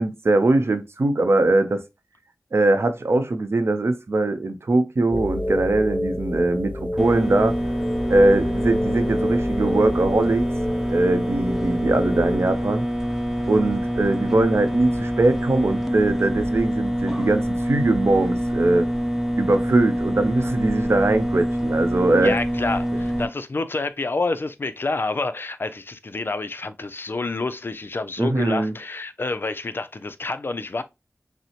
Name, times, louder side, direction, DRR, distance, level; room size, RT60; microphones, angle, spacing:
voice 1, 0.0-1.8 2.5-7.6 8.1-10.5 10.9-12.8 13.5-18.9 19.4-22.4 22.9-23.0 28.2-28.7, right 2 dB, 65° right, 0.6 m, -21 dB
sound 1, 5.1-12.4, left 1 dB, 30° left, 0.8 m, -29 dB
sound 2, 7.0-23.3, equal, 5° right, 0.7 m, -26 dB
voice 2, 22.2-30.8, left 3 dB, 55° left, 0.4 m, -28 dB
5.6 x 2.0 x 2.9 m
wide cardioid pair, 55°, 5 cm